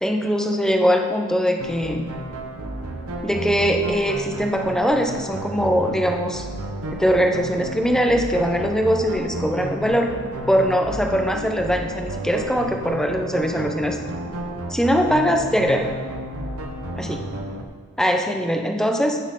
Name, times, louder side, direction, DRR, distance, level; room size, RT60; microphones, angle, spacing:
voice 1, 0.0-2.1 3.2-6.5 6.9-10.1 10.5-14.0 14.7-15.9 16.9-17.3 18.0-19.2, equal, 5° left, 3 dB, 0.7 m, -21 dB
sound 1, 1.6-17.6, right 1 dB, 80° right, 1.0 m, -32 dB
15.5 x 6.2 x 3.8 m, 1.5 s
head